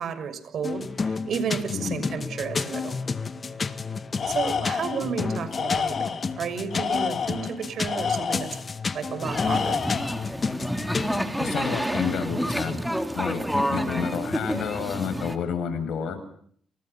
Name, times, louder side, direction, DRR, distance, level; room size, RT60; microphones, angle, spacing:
voice 1, 0.0-3.0 4.3-8.6 8.9-9.8, right 6 dB, 65° right, 11 dB, 6.4 m, -32 dB
sound 1, 0.6-11.2, left 4 dB, 35° left, 1.9 m, -31 dB
voice 2, 1.7-2.1 11.4-12.8 13.1-16.2, left 7 dB, 70° left, 9 dB, 8.0 m, -30 dB
Tools, 4.2-5.1 5.5-6.3 6.7-8.6 9.3-10.2, left 6 dB, 50° left, 3.1 m, -29 dB
sound 2, 9.2-15.4, equal, ahead, 3.8 m, -29 dB
29.0 x 28.5 x 5.9 m, 0.62 s
cardioid pair, 90°, 0 cm